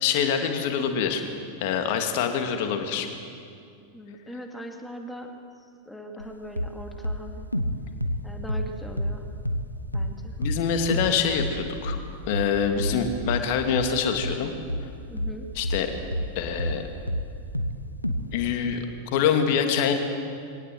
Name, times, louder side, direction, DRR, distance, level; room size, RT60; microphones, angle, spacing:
voice 1, 0.0-1.2 1.6-3.1 10.4-12.0 12.3-14.5 15.6-15.9 16.4-16.8 18.3-18.8 19.1-19.9, left 7 dB, 50° left, 5 dB, 2.4 m, -25 dB
voice 2, 3.9-5.3 5.9-7.5 8.2-9.3 9.9-10.4 15.1-15.5, equal, 5° left, 3 dB, 2.2 m, -40 dB
sound 1, 6.2-6.3 6.6-6.8 7.0-9.2 9.5-9.7 9.9-10.2 10.4-10.6 10.9-11.1 11.4-16.8 17.1-17.8 18.0-18.3, equal, 90° left, 1.1 m, -29 dB
23.5 x 18.0 x 7.7 m, 2.4 s
figure-of-eight pair, 90°, 0 cm